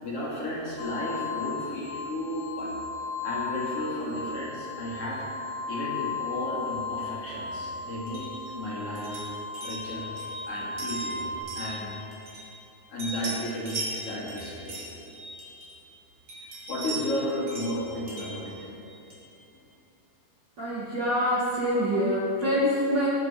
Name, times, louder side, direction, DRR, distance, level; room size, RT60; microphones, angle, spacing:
voice 1, 0.0-2.8 3.2-5.2 5.7-8.3 8.5-9.2 9.6-10.1 10.4-11.3 11.5-11.9 12.9-14.8 16.3-18.7, left 1 dB, 40° left, -7 dB, 3.5 m, -33 dB
sound 1, 0.8-11.4, left 4 dB, 90° left, 3.4 m, -36 dB
sound 2, 8.1-12.7 13.0-15.9 16.3-19.3, right 2 dB, 35° right, 3.4 m, -40 dB
voice 2, 20.6-23.1, equal, 70° right, -6 dB, 1.0 m, -25 dB
20.5 x 8.4 x 4.7 m, 3.0 s
omnidirectional pair, 4.8 m